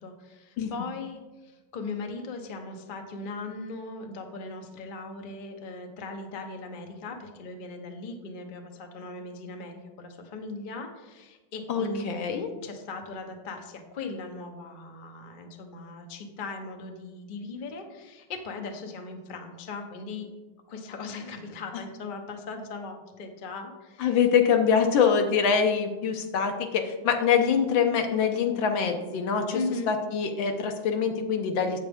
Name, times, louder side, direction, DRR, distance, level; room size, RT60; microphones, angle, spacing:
voice 1, 0.0-12.3 12.6-20.3 20.7-24.2 29.5-29.9, left 3 dB, 45° left, 4 dB, 0.6 m, -38 dB
voice 2, 11.7-12.5 24.0-29.6 29.9-31.8, left 6 dB, 75° left, 5 dB, 1.6 m, -24 dB
8.0 x 8.0 x 3.5 m, 1.2 s
omnidirectional pair, 2.2 m